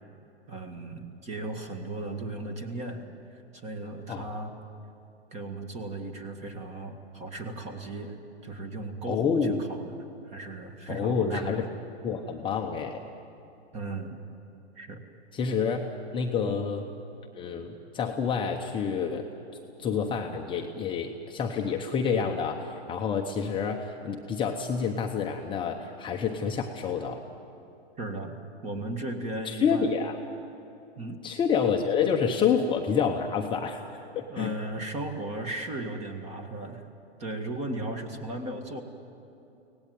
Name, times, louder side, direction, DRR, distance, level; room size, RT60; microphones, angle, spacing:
voice 1, 0.5-3.0 3.3-4.6 5.3-8.2 8.4-11.7 13.7-14.2 14.8-15.0 16.5-16.6 28.0-28.4 28.6-29.9 31.0-31.2 34.3-36.9 37.2-38.8, right 2 dB, 20° right, 6 dB, 1.8 m, -36 dB
voice 2, 9.1-9.6 10.9-11.7 12.0-13.0 15.3-16.9 17.3-19.3 19.8-27.2 29.4-30.2 31.2-33.8 34.1-34.5, left 6 dB, 15° left, 2 dB, 0.9 m, -28 dB
24.0 x 18.0 x 9.3 m, 2.9 s
hypercardioid pair, 145°, 33 cm